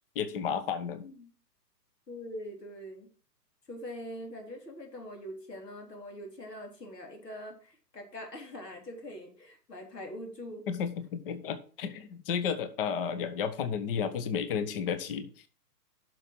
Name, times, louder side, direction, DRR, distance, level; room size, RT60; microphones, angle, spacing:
voice 1, 0.1-1.0 10.7-15.5, left 7 dB, 35° left, 11 dB, 1.1 m, -32 dB
voice 2, 1.0-1.3 2.1-3.1 3.7-10.6, equal, 70° left, 2 dB, 3.8 m, -43 dB
10.5 x 6.3 x 4.6 m, 0.40 s
figure-of-eight pair, 125°, 50 cm